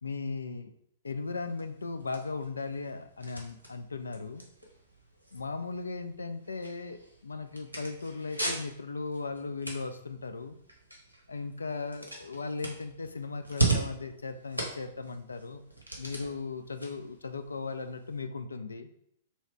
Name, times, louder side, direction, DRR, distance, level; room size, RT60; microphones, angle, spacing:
voice 1, 0.0-0.7 1.0-4.4 5.3-10.6 11.3-15.6 16.0-18.9, left 4 dB, 70° left, 9 dB, 0.3 m, -37 dB
sound 1, 1.2-18.2, right 2 dB, 90° right, 0.9 m, -39 dB
3.1 x 2.8 x 4.5 m, 0.71 s
figure-of-eight pair, 110°, 0 cm